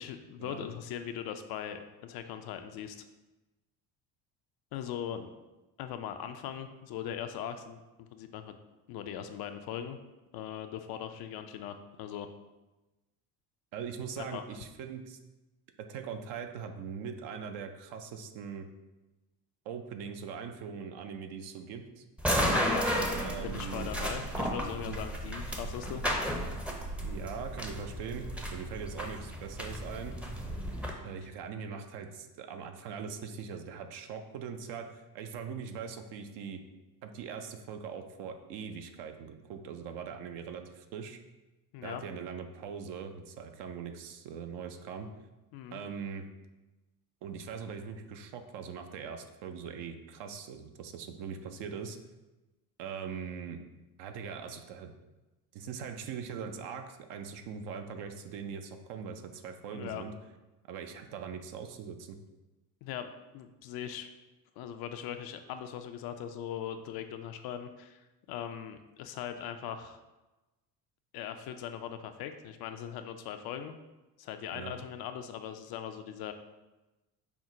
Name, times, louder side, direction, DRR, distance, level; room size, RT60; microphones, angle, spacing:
voice 1, 0.0-3.0 4.7-5.3 5.8-8.5 8.9-10.0 10.3-12.3 14.3-14.4 22.5-22.9 23.4-26.0 41.7-42.0 45.5-45.8 59.7-60.0 62.8-63.1 63.3-64.1 64.6-68.0 68.3-70.0 71.1-73.7 74.2-76.3, left 9 dB, 50° left, 8 dB, 0.5 m, -40 dB
voice 2, 13.7-15.2 15.9-18.7 19.7-22.0 23.2-23.9 24.6-25.0 27.0-30.2 31.0-36.6 37.0-41.2 41.8-45.1 45.7-46.3 47.2-52.0 52.8-53.6 54.0-54.9 55.5-60.1 60.7-62.2 74.5-74.7, right 6 dB, 60° right, 6 dB, 0.6 m, -41 dB
sound 1, 22.2-30.9, equal, 5° right, 0.6 m, -33 dB
5.7 x 2.1 x 3.7 m, 1.1 s
hypercardioid pair, 65°, 49 cm